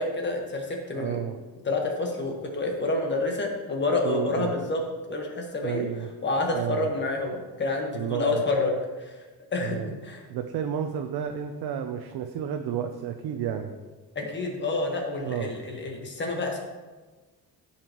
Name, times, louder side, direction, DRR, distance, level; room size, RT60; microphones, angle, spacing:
voice 1, 0.0-1.2 1.6-4.8 5.1-5.8 6.2-9.2 9.5-10.2 14.1-16.6, left 2 dB, 30° left, 1 dB, 1.4 m, -28 dB
voice 2, 0.9-1.4 4.0-4.5 5.6-6.1 6.5-6.9 7.9-8.4 9.6-9.9 10.3-13.7 15.2-15.5, right 9 dB, 85° right, 5 dB, 0.7 m, -31 dB
14.5 x 5.8 x 3.0 m, 1.3 s
cardioid pair, 180°, 37 cm